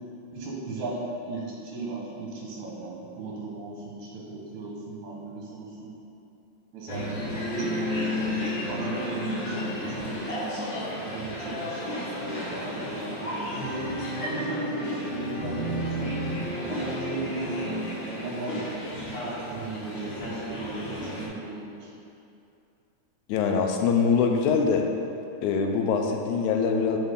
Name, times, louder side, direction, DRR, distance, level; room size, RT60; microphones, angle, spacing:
voice 1, 0.3-6.0 6.7-7.0 7.4-13.6 14.2-16.1 16.6-21.9, right 3 dB, 75° right, -3 dB, 2.5 m, -37 dB
sound 1, 6.9-21.3, equal, 50° left, 1.6 m, -32 dB
voice 2, 23.3-24.9 25.4-27.0, left 5 dB, 85° left, 3 dB, 2.0 m, -23 dB
9.8 x 4.0 x 3.6 m, 2.7 s
omnidirectional pair, 3.4 m